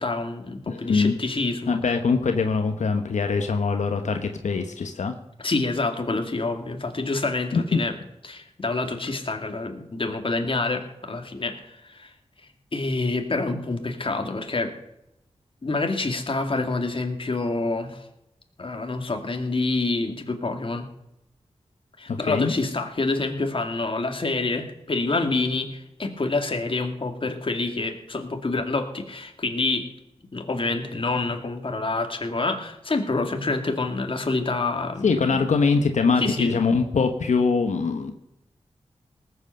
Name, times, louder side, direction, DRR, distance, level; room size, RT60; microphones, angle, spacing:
voice 1, 0.0-2.0 5.4-7.9 8.2-12.1 12.7-14.7 15.6-18.1 18.6-20.9 22.0-29.9 30.3-35.4 36.2-36.6, left 3 dB, 45° left, 5 dB, 2.3 m, -27 dB
voice 2, 0.7-1.2 1.7-5.1 7.5-7.8 22.1-22.5 35.0-38.1, left 4 dB, 90° left, 6 dB, 1.2 m, -23 dB
19.0 x 8.1 x 6.7 m, 0.84 s
wide cardioid pair, 80°, 12 cm